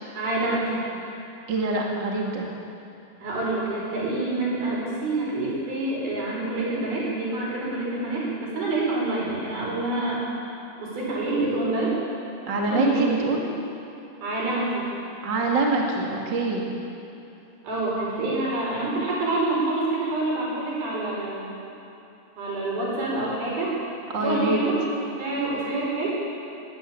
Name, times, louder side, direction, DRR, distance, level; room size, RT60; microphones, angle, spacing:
voice 1, 0.1-0.8 3.2-10.2 10.8-11.9 12.6-13.0 14.2-14.9 17.6-21.5 22.4-23.8 24.2-24.7 25.2-26.1, right 2 dB, 70° right, -5 dB, 8.0 m, -27 dB
voice 2, 1.5-2.5 12.5-13.5 15.2-16.7 24.1-24.6, right 2 dB, 35° right, -1 dB, 2.3 m, -25 dB
21.0 x 16.5 x 8.6 m, 2.9 s
omnidirectional pair, 4.5 m